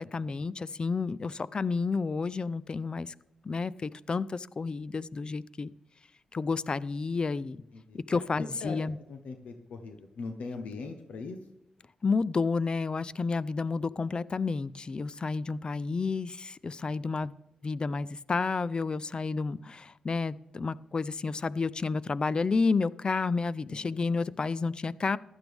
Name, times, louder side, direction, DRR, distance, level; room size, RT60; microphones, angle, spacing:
voice 1, 0.0-3.1 3.4-5.7 6.3-7.6 7.9-9.0 12.0-17.3 17.6-25.2, left 4 dB, 40° left, 19 dB, 0.4 m, -30 dB
voice 2, 7.7-8.8 9.1-11.4 23.7-23.8, left 4 dB, 90° left, 6 dB, 1.0 m, -40 dB
15.5 x 11.5 x 3.5 m, 0.90 s
cardioid pair, 80°, 2 cm